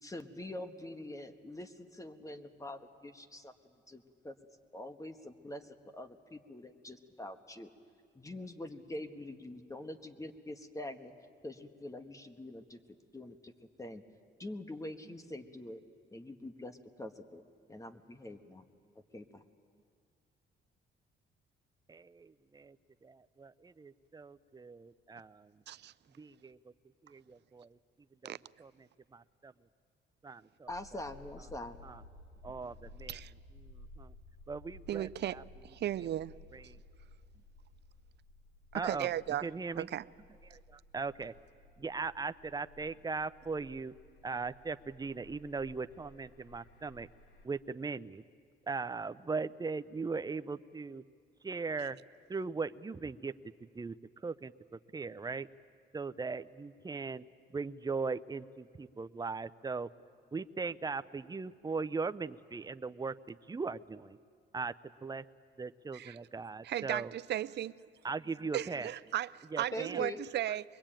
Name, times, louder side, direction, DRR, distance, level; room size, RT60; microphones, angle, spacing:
voice 1, 0.0-3.5 3.9-4.3 4.7-7.7 8.1-11.1 11.4-12.8 13.1-13.5 13.8-14.0 14.4-15.8 16.1-17.4 17.7-18.6 18.9-19.4 30.7-31.8 69.7-70.3, left 1 dB, 15° left, 8 dB, 1.5 m, -44 dB
voice 2, 21.9-22.8 23.0-25.6 26.2-26.7 27.0-27.8 28.2-29.5 30.2-30.7 31.8-32.0 32.4-33.2 33.5-34.1 34.5-35.4 36.0-36.1 36.5-36.8 38.7-39.1 39.4-39.9 40.4-41.3 41.8-43.9 44.2-47.1 47.4-48.2 48.7-51.0 51.4-52.0 52.3-55.5 55.9-57.3 57.5-59.9 60.3-64.2 64.5-64.7 65.0-65.2 65.6-67.1 68.0-68.9 69.5-70.0, right 4 dB, 20° right, 12 dB, 0.6 m, -39 dB
sound 1, 30.7-47.5, left 2 dB, 85° left, 2.7 m, -56 dB
voice 3, 34.9-35.4 35.7-36.3 38.7-39.5 39.8-40.0 65.9-66.1 66.6-67.7 68.5-70.6, right 12 dB, 60° right, 17 dB, 0.5 m, -35 dB
23.0 x 22.0 x 9.0 m, 2.1 s
cardioid pair, 90°, 20 cm